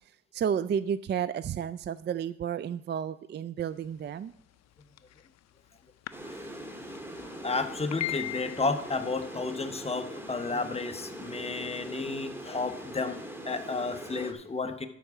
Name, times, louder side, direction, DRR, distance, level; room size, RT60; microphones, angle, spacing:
voice 1, 0.3-4.3, right 8 dB, 35° right, 15 dB, 0.4 m, -31 dB
sound 1, 4.8-5.2 6.1-6.2 6.4-6.5 6.9-7.0 7.7-9.1, left 14 dB, 60° left, 0.6 m, -35 dB
sound 2, 6.1-14.3, right 1 dB, 5° right, 1.7 m, -42 dB
voice 2, 7.2-13.2 13.4-14.9, left 3 dB, 20° left, 7 dB, 1.1 m, -32 dB
12.0 x 4.8 x 7.0 m, 0.75 s
cardioid pair, 90°, 30 cm